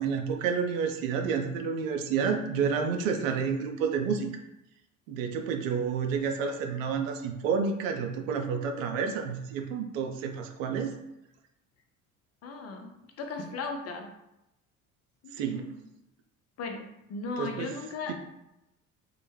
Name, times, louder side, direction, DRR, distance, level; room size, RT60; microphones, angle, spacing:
voice 1, 0.0-4.3 5.1-10.9 15.3-15.7 17.4-17.7 18.1-18.2, right 6 dB, 70° right, 5 dB, 0.5 m, -30 dB
voice 2, 12.4-12.9 13.2-14.1 15.2-15.7 16.6-18.1, left 3 dB, 40° left, 4 dB, 0.5 m, -37 dB
2.1 x 2.0 x 3.2 m, 0.88 s
hypercardioid pair, 55°, 41 cm